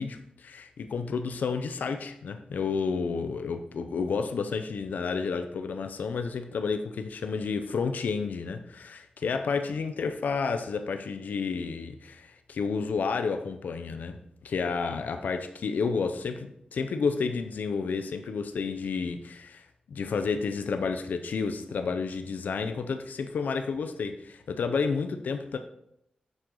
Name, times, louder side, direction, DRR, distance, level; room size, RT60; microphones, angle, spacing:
voice 1, 0.0-14.2 14.4-25.6, left 5 dB, 85° left, 7 dB, 0.5 m, -31 dB
7.3 x 6.4 x 3.8 m, 0.77 s
wide cardioid pair, 170°, 3 cm